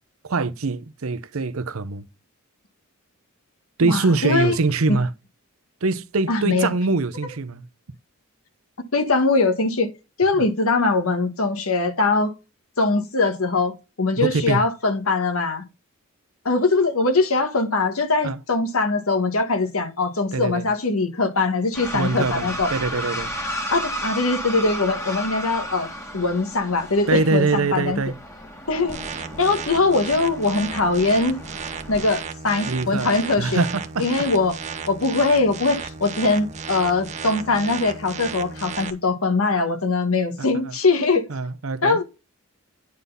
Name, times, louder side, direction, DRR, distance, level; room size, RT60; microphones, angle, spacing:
voice 1, 0.2-2.0 3.8-5.1 5.8-7.6 10.3-10.4 14.2-14.6 18.2-18.4 20.3-20.7 21.9-23.3 27.1-28.2 32.7-34.3 40.4-40.8 41.3-42.0, right 3 dB, 70° right, 0.8 m, -24 dB
voice 2, 3.8-4.5 4.9-5.0 6.3-6.7 8.9-9.9 10.2-12.3 12.8-15.6 16.4-22.7 23.7-25.9 26.1-28.0 28.7-31.4 31.9-33.6 34.0-34.6 34.9-41.3 41.8-42.0, left 3 dB, 70° left, 1.5 m, -21 dB
sound 1, 21.7-32.2, equal, 15° left, 1.6 m, -33 dB
sound 2, 28.9-38.9, right 5 dB, 30° right, 0.9 m, -34 dB
9.6 x 4.0 x 5.4 m
head